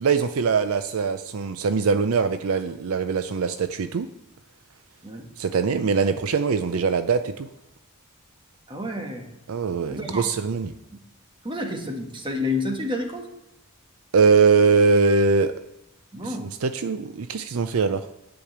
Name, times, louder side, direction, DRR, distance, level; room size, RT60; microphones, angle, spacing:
voice 1, 0.0-4.1 5.4-7.5 9.5-10.7 14.1-15.5 16.2-18.1, right 4 dB, 70° right, 10 dB, 0.5 m, -22 dB
voice 2, 8.7-9.3 9.9-10.3 11.4-13.3 16.1-16.5, left 2 dB, 25° right, 4 dB, 1.3 m, -29 dB
10.0 x 5.2 x 7.9 m, 0.90 s
head